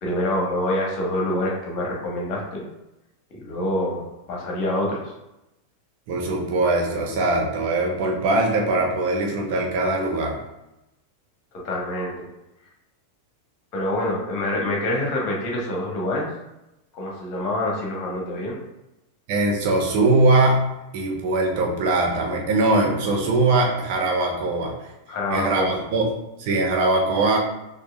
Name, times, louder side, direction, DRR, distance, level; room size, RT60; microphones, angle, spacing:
voice 1, 0.0-2.6 3.4-5.1 11.6-12.3 13.7-16.3 16.9-18.6 25.1-25.7, left 1 dB, 40° left, -2 dB, 1.3 m, -26 dB
voice 2, 6.1-10.4 19.3-20.6 20.9-24.7 25.3-26.1 26.4-27.4, right 2 dB, 45° right, -1 dB, 1.0 m, -21 dB
6.1 x 2.7 x 2.4 m, 0.93 s
figure-of-eight pair, 90°, 0 cm